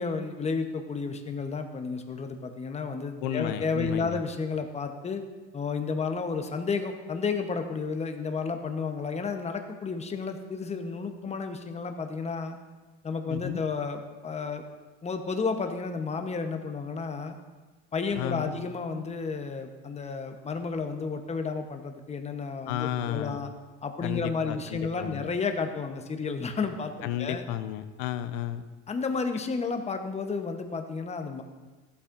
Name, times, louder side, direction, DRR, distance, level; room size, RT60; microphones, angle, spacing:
voice 1, 0.0-5.2 5.5-12.6 13.0-14.6 15.0-17.4 17.9-23.5 23.8-27.4 28.9-31.4, left 4 dB, 20° left, 6 dB, 0.9 m, -32 dB
voice 2, 3.2-4.2 13.3-13.6 18.2-18.5 22.7-23.4 24.0-25.2 27.0-28.6, left 11 dB, 70° left, 11 dB, 0.8 m, -33 dB
14.5 x 8.4 x 2.6 m, 1.3 s
supercardioid pair, 110°, 33 cm